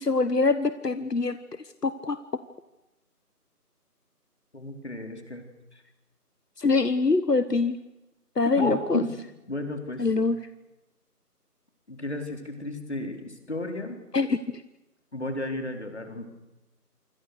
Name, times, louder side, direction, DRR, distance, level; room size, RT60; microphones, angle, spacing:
voice 1, 0.0-1.4 1.8-2.2 6.6-7.8 8.4-9.0 10.0-10.4 14.1-14.6, left 3 dB, 80° left, 13 dB, 1.5 m, -24 dB
voice 2, 4.5-5.4 5.7-5.8 8.5-9.1 9.5-10.1 11.9-14.0 15.1-16.2, left 1 dB, 45° left, 5 dB, 4.0 m, -33 dB
27.0 x 26.0 x 6.7 m, 0.97 s
figure-of-eight pair, 175°, 47 cm